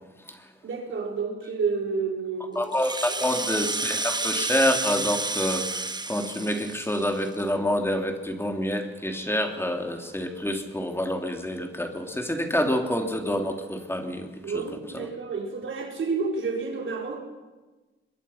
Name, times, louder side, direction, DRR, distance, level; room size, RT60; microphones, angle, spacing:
voice 1, 0.6-2.7 3.1-3.3 14.4-17.2, right 4 dB, 75° right, 1 dB, 4.8 m, -30 dB
voice 2, 2.5-5.8 6.1-14.3 14.5-14.6 14.9-15.1, left 1 dB, 10° left, 4 dB, 3.0 m, -27 dB
Rattle (instrument), 2.6-7.4, right 3 dB, 20° right, 1.2 m, -30 dB
24.5 x 22.5 x 5.9 m, 1.2 s
cardioid pair, 75°, 20 cm